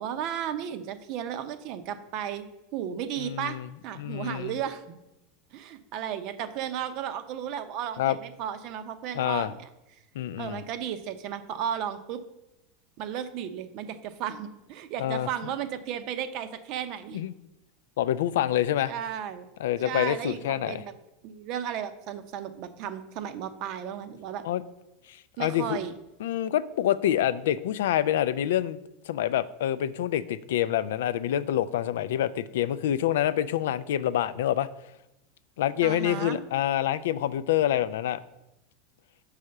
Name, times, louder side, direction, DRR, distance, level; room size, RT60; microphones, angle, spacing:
voice 1, 0.0-2.5 2.7-5.0 5.5-9.7 10.4-12.2 13.0-17.2 18.8-19.5 19.8-20.9 21.2-24.4 25.4-25.9 35.8-36.4, right 9 dB, 50° right, 11 dB, 0.6 m, -34 dB
voice 2, 3.2-3.7 4.0-4.5 8.0-8.2 9.1-9.5 10.2-10.6 15.0-15.3 17.1-17.3 18.0-18.9 19.6-20.8 24.4-24.6 25.1-25.8 26.2-28.8 29.1-34.7 35.6-38.2, left 11 dB, 85° left, 16 dB, 0.3 m, -27 dB
5.6 x 4.8 x 6.4 m, 0.93 s
supercardioid pair, 145°, 0 cm